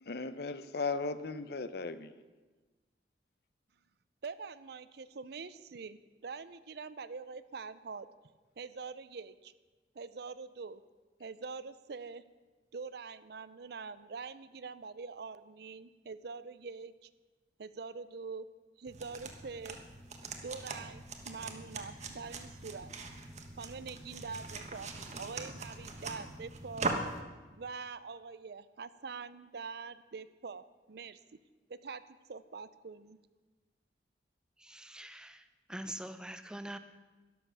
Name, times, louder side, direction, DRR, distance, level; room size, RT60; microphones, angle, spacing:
voice 1, 0.0-2.1, left 4 dB, 60° left, 0.7 m, -36 dB
voice 2, 4.2-8.1 8.6-9.5 9.9-10.8 11.2-12.2 12.7-17.1 17.6-18.5 18.8-19.8 20.4-22.9 23.6-26.9 27.5-31.2 31.7-32.0 32.3-33.2, right 4 dB, 65° right, 0.6 m, -44 dB
sound 1, 18.9-27.2, right 3 dB, 40° right, 1.2 m, -41 dB
voice 3, 34.6-35.4 35.7-36.8, right 1 dB, 5° right, 0.7 m, -44 dB
12.5 x 11.5 x 6.3 m
head